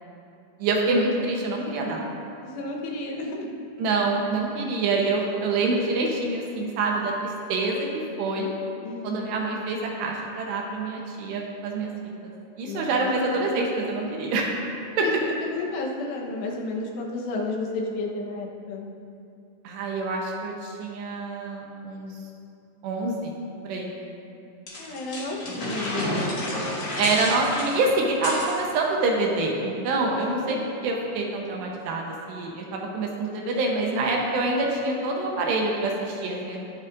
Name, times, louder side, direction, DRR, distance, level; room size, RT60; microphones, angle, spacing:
voice 1, 0.6-2.0 3.8-7.9 8.2-8.5 9.0-11.9 12.2-14.5 15.0-15.1 19.6-22.1 22.8-23.3 23.6-23.9 27.0-30.6 30.8-36.6, right 3 dB, 75° right, -1 dB, 3.0 m, -26 dB
voice 2, 2.4-3.5 8.8-9.4 12.7-13.1 14.9-18.9 24.8-26.5 30.2-30.7, left 2 dB, 75° left, -1 dB, 3.2 m, -32 dB
sound 1, 24.7-28.6, left 1 dB, 40° left, 2.1 m, -30 dB
21.0 x 7.2 x 2.6 m, 2.6 s
omnidirectional pair, 5.2 m